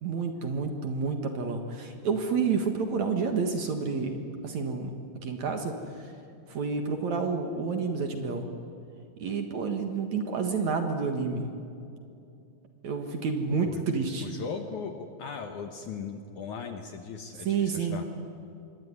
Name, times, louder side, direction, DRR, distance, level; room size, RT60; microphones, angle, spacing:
voice 1, 0.0-4.2 4.4-4.9 5.2-6.1 6.5-8.5 9.2-11.5 12.8-14.3 17.5-18.0, right 5 dB, 55° right, 5 dB, 2.5 m, -29 dB
voice 2, 14.2-18.1, left 5 dB, 65° left, 6 dB, 2.2 m, -38 dB
26.5 x 22.5 x 9.7 m, 2.6 s
omnidirectional pair, 4.7 m